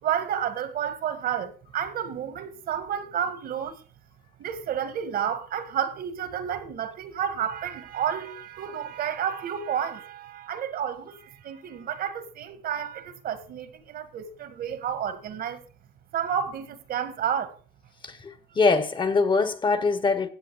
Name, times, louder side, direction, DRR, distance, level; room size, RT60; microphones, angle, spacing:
voice 1, 0.0-3.8 4.4-15.6 16.1-17.6, right 8 dB, 60° right, 1.8 m, -31 dB
voice 2, 18.0-20.3, left 4 dB, 30° left, 1.4 m, -23 dB
15.5 x 7.8 x 4.8 m
cardioid pair, 110°, 17 cm